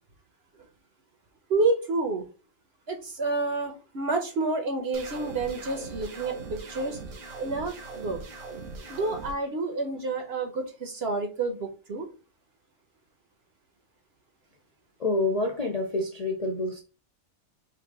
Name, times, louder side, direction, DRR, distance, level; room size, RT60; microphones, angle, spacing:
voice 1, 1.5-2.2 2.9-7.0 7.4-8.2 8.9-12.1, right 3 dB, 50° right, 1.0 m, -29 dB
sound 1, 4.9-9.3, right 4 dB, 70° right, 1.5 m, -40 dB
voice 2, 15.0-16.8, left 2 dB, 40° left, 0.5 m, -27 dB
5.8 x 2.4 x 3.5 m
omnidirectional pair, 1.5 m